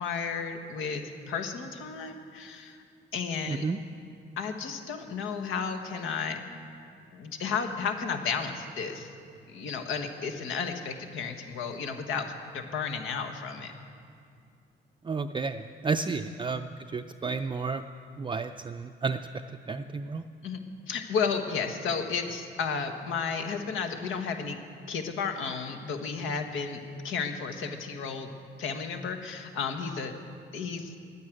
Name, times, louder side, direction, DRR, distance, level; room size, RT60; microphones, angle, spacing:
voice 1, 0.0-2.8 3.1-3.7 4.4-6.4 7.1-9.1 9.5-13.7 20.4-20.6 20.9-24.6 24.9-28.3 28.6-30.1 30.5-30.9, left 5 dB, 85° left, 6 dB, 1.4 m, -33 dB
voice 2, 3.5-3.8 15.0-17.8 18.2-19.2 19.7-20.2, right 4 dB, 25° right, 7 dB, 0.4 m, -31 dB
11.5 x 9.6 x 9.0 m, 2.3 s
cardioid pair, 90°, 20 cm